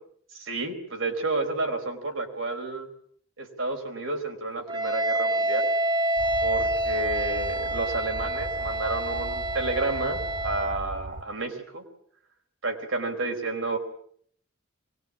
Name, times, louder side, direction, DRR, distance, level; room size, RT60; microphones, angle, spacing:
voice 1, 0.3-2.9 3.4-5.7 6.4-11.8 12.6-13.8, right 2 dB, 70° right, 4 dB, 4.5 m, -30 dB
Wind instrument woodwind instrument, 4.7-10.8, right 1 dB, 25° right, 1.4 m, -28 dB
sound 1, 6.2-11.2, right 2 dB, 40° right, 2.6 m, -38 dB
24.0 x 21.0 x 8.6 m, 0.63 s
head